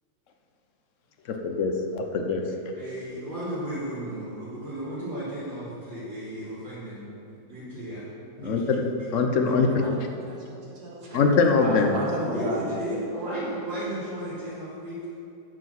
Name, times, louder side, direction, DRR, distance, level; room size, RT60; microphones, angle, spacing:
voice 1, 1.3-2.5 8.4-8.8 9.1-9.9 11.1-11.9, left 4 dB, 55° left, 4 dB, 1.0 m, -23 dB
voice 2, 2.5-7.1 7.5-8.0 8.4-9.7 12.3-15.1, equal, 80° right, -15 dB, 3.5 m, -34 dB
voice 3, 9.5-11.3 11.6-12.7, right 1 dB, 60° right, -3 dB, 1.9 m, -34 dB
9.9 x 5.9 x 6.1 m, 2.7 s
omnidirectional pair, 2.0 m